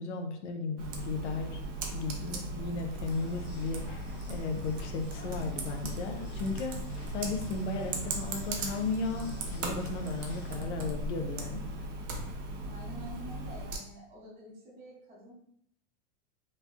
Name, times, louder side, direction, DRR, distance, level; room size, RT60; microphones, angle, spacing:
voice 1, 0.0-1.6 1.9-4.0 4.3-6.8 7.1-11.6, left 3 dB, 70° left, 5 dB, 0.6 m, -35 dB
Computer keyboard, 0.8-13.8, right 2 dB, 90° right, 0.7 m, -37 dB
sound 1, 3.0-10.6, left 2 dB, 30° left, 0.4 m, -52 dB
voice 2, 12.7-15.3, right 1 dB, 20° right, -6 dB, 0.7 m, -47 dB
3.2 x 2.3 x 2.4 m, 0.68 s
supercardioid pair, 165°, 36 cm